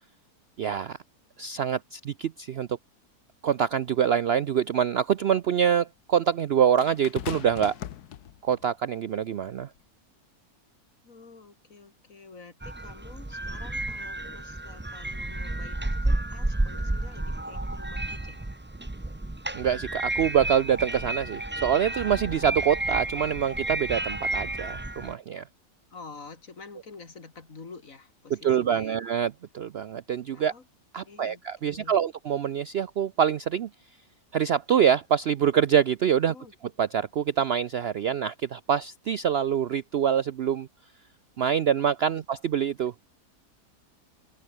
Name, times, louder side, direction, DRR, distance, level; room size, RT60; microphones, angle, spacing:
voice 1, 0.6-1.0 1.4-2.7 3.4-7.8 8.4-9.7 19.5-25.4 28.3-30.5 30.9-33.7 34.3-36.3 36.8-40.7 41.4-42.9, right 8 dB, 65° right, 0.6 m, -25 dB
sound 1, 3.9-4.0 6.8-8.7 9.6-9.8, left 11 dB, 85° left, 1.5 m, -39 dB
voice 2, 11.0-18.4 25.9-28.9 30.3-30.6 31.0-32.0 36.3-36.5 42.2-42.3, left 4 dB, 60° left, 2.9 m, -48 dB
sound 2, 12.6-25.1, right 1 dB, 10° right, 0.7 m, -31 dB
open air
omnidirectional pair, 1.6 m